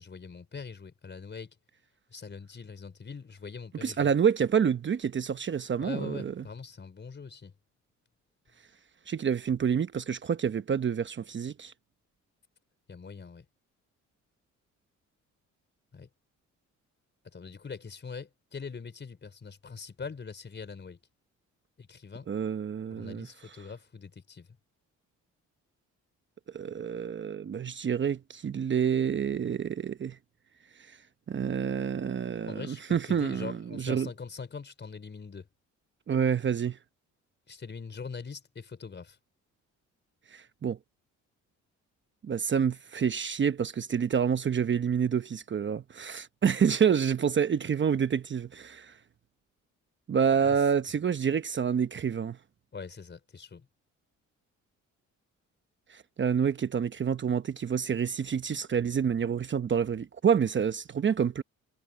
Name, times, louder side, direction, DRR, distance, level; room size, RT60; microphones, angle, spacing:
voice 1, 0.0-1.5 2.1-4.1 5.8-7.5 12.9-13.4 15.9-16.1 17.2-21.0 21.8-22.3 22.9-24.5 32.5-35.5 37.5-39.2 50.4-50.7 52.7-53.7, left 5 dB, 35° left, 4.5 m, -42 dB
voice 2, 3.8-6.4 9.1-11.7 22.3-23.3 26.5-30.2 30.9-31.0 31.3-34.1 36.1-36.8 40.3-40.8 42.2-48.9 50.1-52.4 55.9-61.4, right 7 dB, 40° right, 0.9 m, -28 dB
cardioid pair, 90°, 30 cm